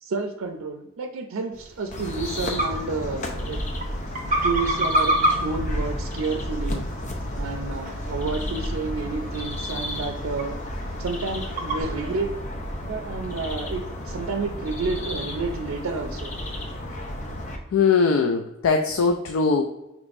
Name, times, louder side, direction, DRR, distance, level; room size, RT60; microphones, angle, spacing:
voice 1, 0.0-3.6 4.4-5.1 5.4-6.9 7.4-12.3 12.8-16.3, right 4 dB, 85° right, 4 dB, 0.4 m, -30 dB
sound 1, 1.5-11.8, right 1 dB, 40° right, 0.6 m, -30 dB
sound 2, 1.9-17.6, left 1 dB, 35° left, 0.6 m, -32 dB
voice 2, 17.7-19.6, left 5 dB, 85° left, 4 dB, 0.4 m, -20 dB
5.1 x 3.1 x 2.5 m, 0.94 s
head